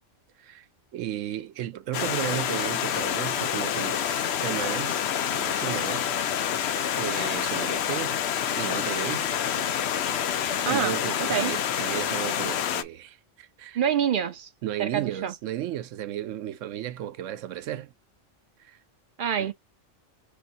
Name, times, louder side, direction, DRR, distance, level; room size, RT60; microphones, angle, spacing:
voice 1, 0.9-5.0 5.3-6.1 7.0-8.2 8.6-9.4 10.6-13.8 14.6-17.9 18.6-18.8 19.4-19.5, right 12 dB, 80° right, 0.9 m, -34 dB
Stream, 1.9-12.8, left 9 dB, 65° left, 0.8 m, -27 dB
voice 2, 10.7-11.6 13.7-14.5 14.8-15.3 19.2-19.5, right 8 dB, 60° right, 0.6 m, -27 dB
5.0 x 2.6 x 3.9 m
omnidirectional pair, 1.3 m